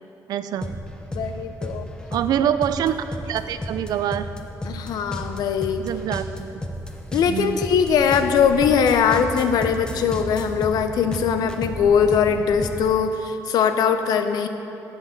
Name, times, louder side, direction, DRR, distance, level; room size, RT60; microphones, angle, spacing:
voice 1, 0.3-0.7 2.1-4.3 5.8-6.6 7.3-7.6, right 10 dB, 75° right, 12 dB, 0.4 m, -25 dB
sound 1, 0.6-12.9, equal, 10° left, 0.8 m, -33 dB
voice 2, 1.1-1.9 4.6-5.9 7.1-14.5, left 7 dB, 80° left, 8 dB, 0.6 m, -21 dB
7.7 x 6.9 x 7.1 m, 2.8 s
cardioid pair, 100°, 7 cm